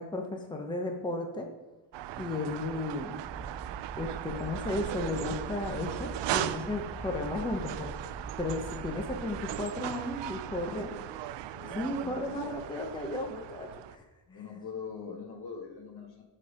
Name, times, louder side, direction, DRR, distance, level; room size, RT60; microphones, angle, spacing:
voice 1, 0.0-1.5 2.2-3.2 4.0-7.9 8.4-10.9 11.6-14.0 14.3-14.5, left 2 dB, 10° left, 2 dB, 0.8 m, -34 dB
sound 1, 1.9-14.0, right 13 dB, 80° right, 0.5 m, -38 dB
sound 2, 3.2-9.6, right 3 dB, 15° right, 0.4 m, -43 dB
voice 2, 10.7-11.0 11.5-12.5 14.3-16.2, left 5 dB, 60° left, 2 dB, 1.8 m, -43 dB
12.5 x 4.5 x 5.0 m, 1.1 s
wide cardioid pair, 165°, 43 cm